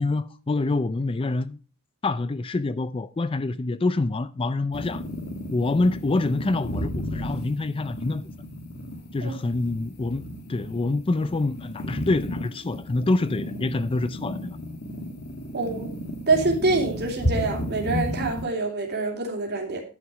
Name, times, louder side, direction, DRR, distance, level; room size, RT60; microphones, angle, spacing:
voice 1, 0.0-1.6 2.0-5.0 5.5-8.3 9.1-10.2 10.5-14.6, left 2 dB, 25° left, 0.4 m, -26 dB
sound 1, 4.7-18.4, left 1 dB, 50° left, 1.6 m, -33 dB
voice 2, 15.5-15.9 16.3-19.8, right 3 dB, 50° right, 2.8 m, -25 dB
11.0 x 6.5 x 4.8 m
head